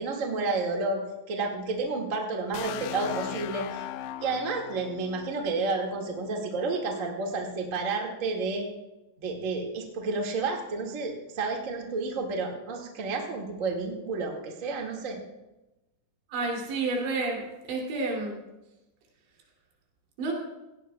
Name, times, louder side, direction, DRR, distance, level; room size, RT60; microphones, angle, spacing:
voice 1, 0.0-3.8 4.2-8.7 9.2-15.2, right 3 dB, 50° right, 1 dB, 0.9 m, -31 dB
sound 1, 2.5-6.4, left 11 dB, 85° left, 2.2 m, -38 dB
voice 2, 16.3-17.4 17.7-18.4 20.2-20.3, right 3 dB, 90° right, -1 dB, 5.1 m, -29 dB
18.0 x 16.0 x 2.3 m, 1.0 s
omnidirectional pair, 5.0 m